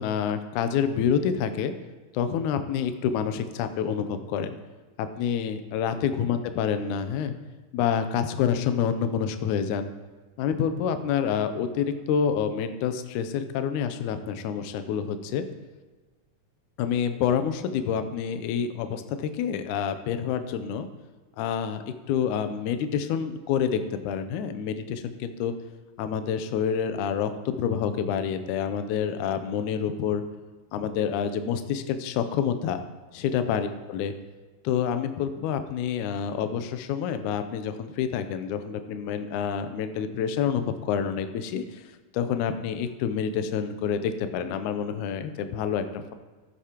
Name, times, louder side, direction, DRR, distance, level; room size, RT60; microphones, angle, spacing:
voice 1, 0.0-1.7 2.1-4.6 5.0-7.3 7.7-9.9 10.4-15.4 16.8-20.9 21.4-25.5 26.0-30.2 30.7-32.8 33.1-34.1 34.6-41.8 42.1-46.1, left 7 dB, 75° left, 9 dB, 2.0 m, -28 dB
15.5 x 8.3 x 2.9 m, 1.3 s
omnidirectional pair, 3.8 m